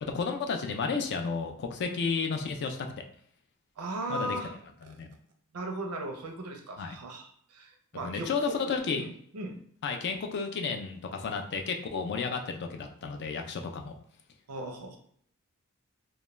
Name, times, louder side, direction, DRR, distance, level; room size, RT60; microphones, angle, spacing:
voice 1, 0.0-2.9 4.1-4.4 4.9-5.1 6.8-6.9 8.0-9.0 9.8-13.9, left 5 dB, 50° left, 4 dB, 0.3 m, -32 dB
voice 2, 3.8-4.5 4.8-4.9 5.5-8.7 9.0-9.6 14.5-15.0, right 2 dB, 85° right, 3 dB, 0.6 m, -37 dB
2.3 x 2.1 x 3.0 m, 0.63 s
head